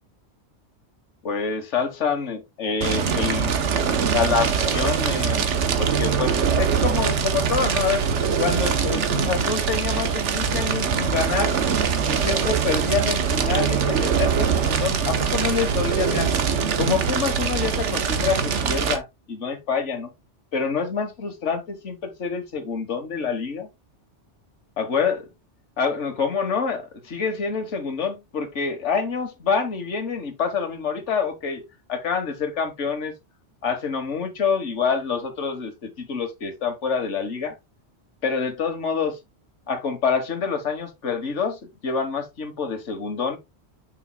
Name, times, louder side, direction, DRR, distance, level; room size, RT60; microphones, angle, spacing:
voice 1, 1.2-3.6 4.1-5.5 5.8-8.0 8.4-11.5 12.1-16.3 16.8-20.1 20.5-23.7 24.8-25.2 25.8-33.1 33.6-37.6 38.2-39.2 39.7-43.4, left 5 dB, 85° left, 1.6 m, -27 dB
Fire, 2.8-19.0, right 6 dB, 80° right, 1.2 m, -23 dB
7.2 x 6.0 x 2.2 m
omnidirectional pair, 1.2 m